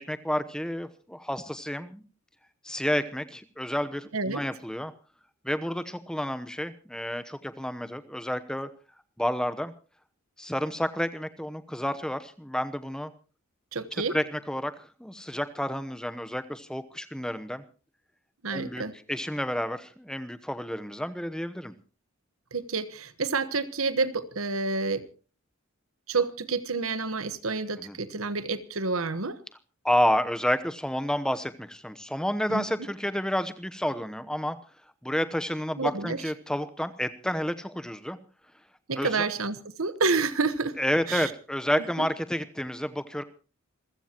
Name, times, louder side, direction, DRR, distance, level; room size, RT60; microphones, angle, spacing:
voice 1, 0.1-2.0 2.6-4.9 5.4-8.7 9.2-9.7 10.4-13.1 14.1-17.6 18.5-21.7 27.8-28.0 29.8-34.6 35.0-38.2 39.0-39.3 40.8-43.2, equal, 5° left, 0.9 m, -30 dB
voice 2, 4.1-4.4 13.7-14.2 18.4-18.9 22.5-25.1 26.1-29.4 32.5-32.6 35.8-36.2 38.9-40.8 41.1-41.3 41.8-42.1, right 4 dB, 80° right, 1.3 m, -29 dB
27.5 x 15.0 x 3.0 m
head